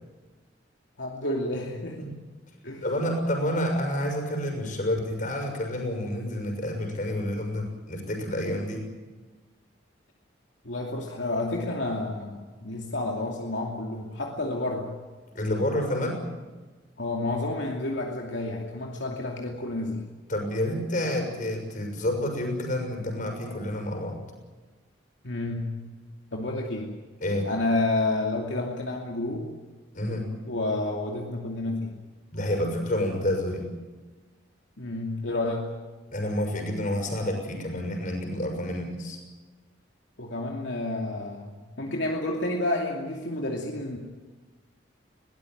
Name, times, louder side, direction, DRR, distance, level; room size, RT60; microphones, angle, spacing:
voice 1, 1.0-2.1 2.6-2.8 10.6-14.9 17.0-20.0 25.2-25.9 26.3-26.9 27.5-29.5 30.5-31.9 34.8-35.7 40.2-44.0, left 2 dB, 75° left, 0 dB, 2.7 m, -30 dB
voice 2, 2.8-8.8 15.3-16.2 20.3-24.2 27.2-27.5 29.9-30.3 32.3-33.7 36.1-39.2, left 1 dB, 45° left, 4 dB, 6.4 m, -29 dB
22.0 x 18.0 x 9.4 m, 1.3 s
head